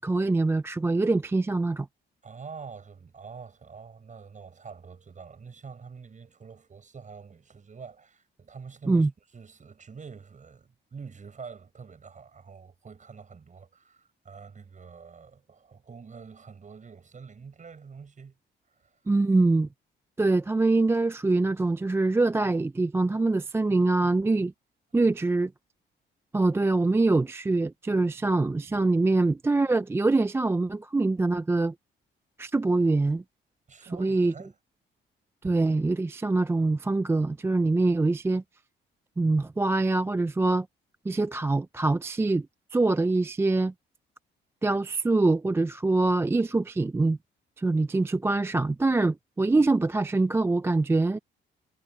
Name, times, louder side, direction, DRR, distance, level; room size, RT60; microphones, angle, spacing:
voice 1, 0.0-1.9 8.9-9.1 19.1-19.7 20.2-24.5 24.9-25.5 26.3-31.7 32.4-33.2 34.0-34.3 35.4-38.4 39.2-40.7 41.1-42.5 42.7-43.7 44.6-47.2 47.6-51.2, right 3 dB, 10° right, 0.4 m, -24 dB
voice 2, 2.2-18.3 18.8-19.0 33.7-34.6 35.4-35.6, right 5 dB, 40° right, 7.2 m, -46 dB
cardioid pair, 90°, 20 cm